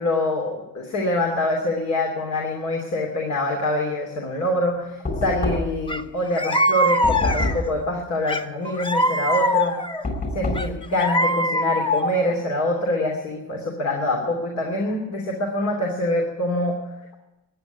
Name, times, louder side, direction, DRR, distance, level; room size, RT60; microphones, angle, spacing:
voice 1, 0.0-9.7 10.3-16.8, left 1 dB, 70° left, 0 dB, 3.0 m, -25 dB
Knock, 5.0-5.9 7.0-7.8 10.0-10.8, left 2 dB, 35° left, 4.6 m, -26 dB
sound 1, 5.9-6.0 6.4-7.7 8.3-10.0 10.6-12.3, left 1 dB, 15° left, 0.9 m, -22 dB
14.5 x 9.9 x 9.6 m, 1.0 s
cardioid pair, 90°, 30 cm